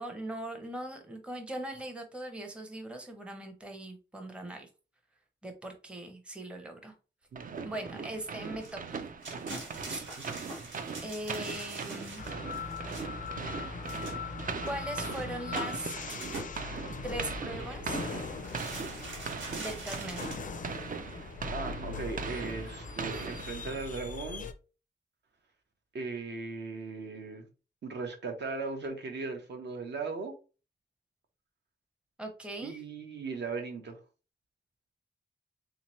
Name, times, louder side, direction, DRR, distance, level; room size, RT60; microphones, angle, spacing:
voice 1, 0.0-4.7 5.4-6.9 7.6-9.0 9.9-10.0 11.0-12.4 14.6-16.0 17.0-18.0 19.6-20.3 32.2-32.8, right 1 dB, 5° right, 0.6 m, -40 dB
voice 2, 7.3-7.7 10.2-10.4 21.5-24.5 25.9-27.5 27.8-30.3 32.6-34.0, right 4 dB, 65° right, 0.8 m, -38 dB
sound 1, 7.4-24.1, right 5 dB, 45° right, 0.4 m, -40 dB
sound 2, 8.6-13.3 13.8-14.3 14.7-14.8 15.0-16.6 17.3-18.1 18.4-20.4, right 2 dB, 85° right, 1.4 m, -43 dB
sound 3, 12.2-24.5, left 5 dB, 45° left, 0.4 m, -40 dB
3.5 x 2.9 x 2.9 m
wide cardioid pair, 165°, 19 cm